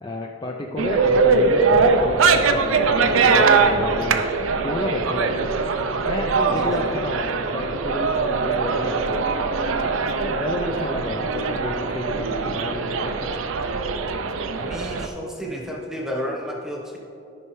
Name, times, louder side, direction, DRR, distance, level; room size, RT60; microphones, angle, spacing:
voice 1, 0.0-4.3 4.6-5.6 6.1-9.5 10.2-13.5, left 1 dB, 20° left, 0 dB, 0.4 m, -31 dB
sound 1, 0.8-15.1, right 4 dB, 75° right, 0.5 m, -21 dB
sound 2, 1.6-4.1, right 1 dB, 30° right, 0.6 m, -41 dB
voice 2, 14.5-17.0, equal, ahead, -2 dB, 1.0 m, -31 dB
13.0 x 5.6 x 3.1 m, 2.8 s
head